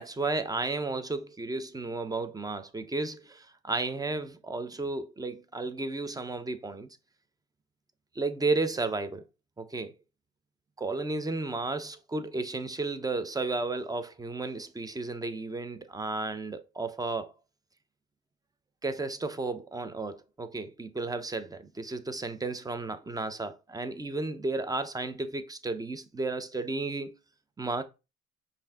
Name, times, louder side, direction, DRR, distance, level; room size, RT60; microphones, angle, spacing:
voice 1, 0.0-6.9 8.1-9.2 9.6-9.9 10.8-17.3 18.8-27.2 27.6-27.8, right 3 dB, 10° right, 0.7 m, -33 dB
5.3 x 2.8 x 3.6 m
hypercardioid pair, 70°, 36 cm